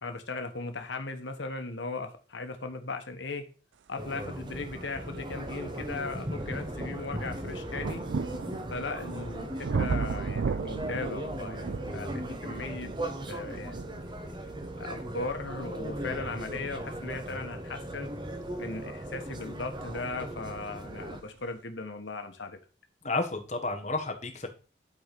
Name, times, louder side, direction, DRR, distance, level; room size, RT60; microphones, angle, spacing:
voice 1, 0.0-3.4 3.9-8.0 8.7-12.9 13.3-14.3 14.8-18.1 18.6-22.6, left 3 dB, 80° left, 6 dB, 1.3 m, -38 dB
sound 1, 4.0-21.2, right 1 dB, 25° right, 1.1 m, -38 dB
sound 2, 4.9-5.0 5.5-20.2 21.1-21.2, right 5 dB, 80° right, 0.4 m, -37 dB
voice 2, 23.0-24.5, left 3 dB, 40° left, 3 dB, 1.6 m, -31 dB
11.0 x 4.4 x 5.3 m, 0.34 s
head